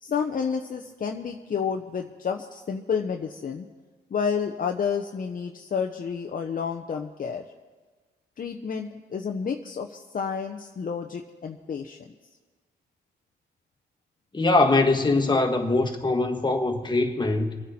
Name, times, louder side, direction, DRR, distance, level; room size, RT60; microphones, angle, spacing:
voice 1, 0.0-3.7 4.1-7.4 8.4-12.0, left 6 dB, 45° left, 0.9 m, -30 dB
voice 2, 14.3-17.6, left 2 dB, 20° left, 1.7 m, -22 dB
25.0 x 9.4 x 4.3 m
cardioid pair, 75°, 20 cm